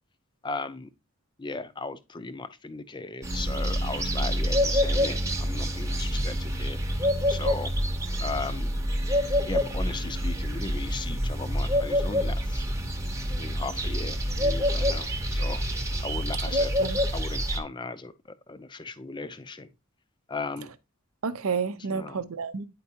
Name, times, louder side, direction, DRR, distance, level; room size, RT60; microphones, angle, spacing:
voice 1, 0.4-0.9 1.4-7.7 8.2-8.7 9.4-12.6 13.4-15.6 16.0-16.7 17.1-18.1 18.5-19.7 20.3-20.7 21.9-22.2, left 3 dB, 20° left, 0.5 m, -37 dB
sound 1, 3.2-17.6, equal, 15° right, 0.8 m, -27 dB
voice 2, 16.5-17.0 21.2-22.7, right 5 dB, 75° right, 0.6 m, -31 dB
9.6 x 4.4 x 2.8 m
head